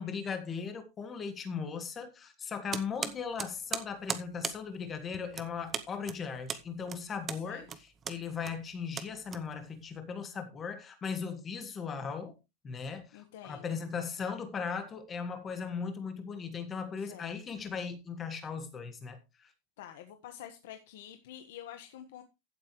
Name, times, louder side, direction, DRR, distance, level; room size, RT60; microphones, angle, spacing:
voice 1, 0.0-12.4 12.6-19.5, left 6 dB, 15° left, 1.7 m, -38 dB
sound 1, 2.7-9.9, right 7 dB, 15° right, 0.8 m, -39 dB
voice 2, 7.3-7.7 13.1-13.8 17.0-17.4 19.8-22.2, left 11 dB, 65° left, 1.4 m, -48 dB
15.0 x 7.9 x 3.2 m
supercardioid pair, 175°, 0 cm